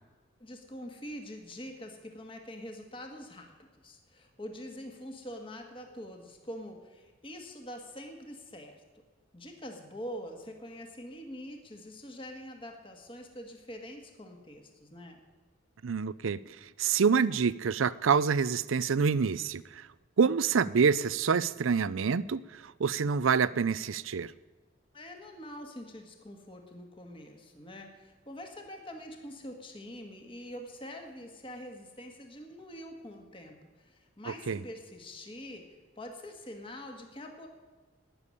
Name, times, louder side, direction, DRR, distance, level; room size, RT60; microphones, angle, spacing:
voice 1, 0.4-8.8 9.3-15.2 24.9-37.5, equal, 25° left, 3 dB, 1.9 m, -45 dB
voice 2, 15.8-16.4 16.8-19.8 20.2-24.3 34.5-34.6, right 6 dB, 80° right, 18 dB, 0.5 m, -27 dB
18.5 x 7.0 x 9.7 m, 1.3 s
head